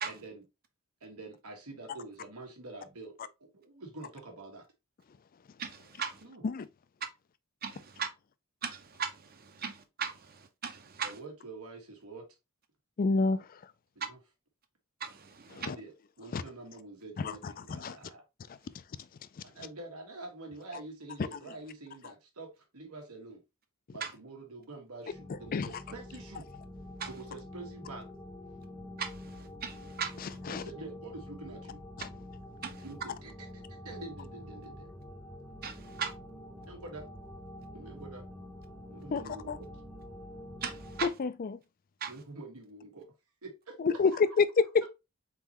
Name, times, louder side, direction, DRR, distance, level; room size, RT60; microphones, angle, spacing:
voice 1, 0.0-0.4 1.0-4.7 6.2-6.4 11.0-12.3 13.9-14.2 15.5-18.2 19.4-23.4 23.9-26.5 27.0-28.1 30.5-31.8 32.8-34.9 36.5-37.1 37.7-38.2 38.9-39.7 42.1-43.1 43.4-44.0, right 2 dB, 90° right, 1.5 m, -46 dB
voice 2, 5.6-6.2 7.6-8.1 8.6-11.2 15.0-15.7 24.0-24.1 27.0-27.1 29.0-30.4 32.6-32.8 35.6-36.1 40.6-41.1 42.0-42.1, right 6 dB, 45° right, 0.7 m, -38 dB
voice 3, 13.0-13.4 15.6-15.8 16.3-16.4 17.2-18.0 25.5-25.7 30.5-30.6 32.0-32.1 39.1-39.2 39.5-39.6 41.0-41.6 43.8-44.1 44.4-44.5, left 4 dB, 40° left, 0.4 m, -29 dB
sound 1, 25.1-41.1, left 1 dB, 15° left, 0.7 m, -47 dB
4.1 x 3.8 x 2.9 m
head